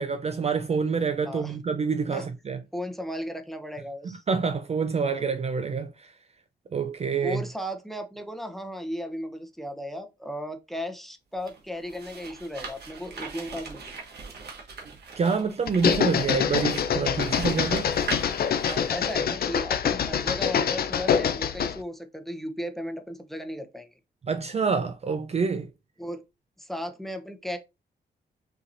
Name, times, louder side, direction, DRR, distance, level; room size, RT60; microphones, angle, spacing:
voice 1, 0.0-2.6 4.0-6.1 6.7-7.4 15.2-17.9 24.3-25.7, right 5 dB, 35° right, 0.4 m, -27 dB
voice 2, 2.7-4.2 7.2-13.9 18.7-23.9 26.0-26.2 26.6-27.6, equal, ahead, 0.8 m, -35 dB
sound 1, 11.3-19.1, right 4 dB, 65° right, 1.3 m, -40 dB
sound 2, 15.7-21.8, left 8 dB, 55° left, 0.5 m, -25 dB
5.8 x 2.9 x 2.6 m
cardioid pair, 80°, 18 cm